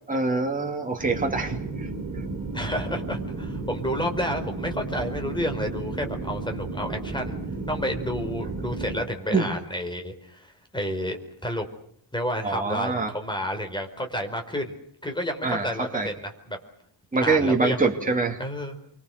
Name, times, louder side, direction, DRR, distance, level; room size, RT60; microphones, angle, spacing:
voice 1, 0.1-2.2 9.3-9.5 12.4-13.1 15.4-15.7 15.9-16.1 17.1-18.4, right 3 dB, 15° right, 1 dB, 2.8 m, -25 dB
sound 1, 1.0-9.0, right 3 dB, 40° right, 7.6 m, -33 dB
voice 2, 2.5-7.4 7.7-11.7 12.1-14.8 15.0-16.6 17.2-17.8 18.4-18.8, equal, 10° left, 5 dB, 4.7 m, -30 dB
29.0 x 25.0 x 6.7 m, 0.65 s
wide cardioid pair, 155°, 45 cm